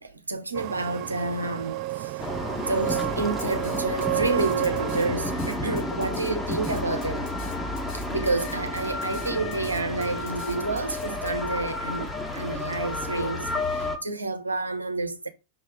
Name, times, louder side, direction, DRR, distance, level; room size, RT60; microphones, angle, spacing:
voice 1, 0.0-7.4 7.9-15.3, right 3 dB, 80° right, 1.0 m, -29 dB
sound 1, 0.5-5.6, right 19 dB, 40° right, 0.3 m, -31 dB
sound 2, 2.2-14.0, left 2 dB, 10° left, 1.3 m, -31 dB
Drum kit, 3.4-11.3, left 5 dB, 50° left, 2.9 m, -47 dB
6.1 x 3.3 x 5.0 m
figure-of-eight pair, 90°, 0 cm